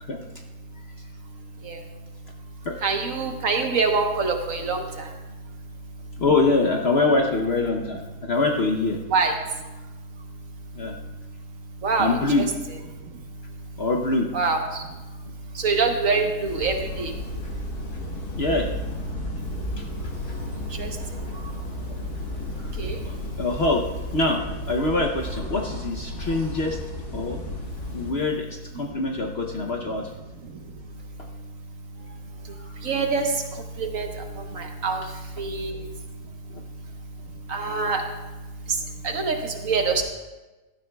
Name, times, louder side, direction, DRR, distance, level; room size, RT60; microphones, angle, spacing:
voice 1, 2.8-4.8 9.1-9.3 11.8-12.4 14.3-14.8 15.6-17.1 20.8-20.9 22.8-23.0 32.8-33.3 33.8-34.1 34.5-35.0 35.4-35.8 37.5-38.0 39.0-40.0, right 4 dB, 55° right, 3 dB, 1.3 m, -24 dB
voice 2, 6.2-9.0 10.7-11.0 12.0-12.5 13.8-14.3 18.4-18.7 19.8-19.9 21.9-22.0 22.6-22.7 23.0-26.8 27.1-27.4 27.9-30.1 31.2-31.3 32.0-32.2 32.5-32.8 36.5-36.6, left 3 dB, 50° left, 2 dB, 0.8 m, -24 dB
sound 1, 16.5-28.1, left 1 dB, 70° left, 2.2 m, -33 dB
15.5 x 12.5 x 2.3 m, 1.1 s
omnidirectional pair, 1.7 m